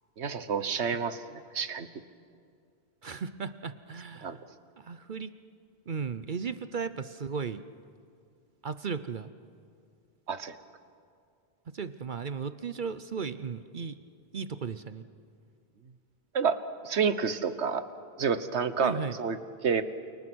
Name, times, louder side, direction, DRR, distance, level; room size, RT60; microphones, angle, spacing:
voice 1, 0.2-1.2 1.5-1.9 4.2-4.4 10.3-10.5 16.3-17.8 18.2-19.4 19.6-19.8, right 6 dB, 85° right, 12 dB, 1.4 m, -29 dB
voice 2, 3.0-4.4 4.8-5.3 5.9-7.6 8.6-9.3 11.7-14.0 14.3-15.0 18.8-19.2, right 5 dB, 50° right, 12 dB, 0.8 m, -35 dB
29.0 x 29.0 x 6.3 m, 2.3 s
omnidirectional pair, 1.1 m